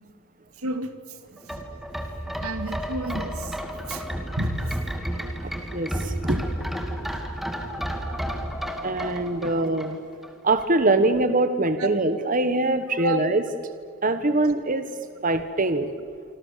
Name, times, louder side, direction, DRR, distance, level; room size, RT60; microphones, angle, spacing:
voice 1, 0.6-0.9 1.5-1.6 2.4-3.5 3.9-4.0 4.4-4.6 9.5-9.8 11.8-11.9 13.0-13.2, right 2 dB, 85° right, 9 dB, 2.5 m, -30 dB
sound 1, 1.4-10.3 10.6-10.7, equal, ahead, 2.3 m, -31 dB
voice 2, 5.4-6.4 8.8-10.0 10.4-13.4 14.0-14.8 15.2-15.9, right 2 dB, 40° right, 10 dB, 1.2 m, -23 dB
27.5 x 26.0 x 7.4 m, 2.1 s
head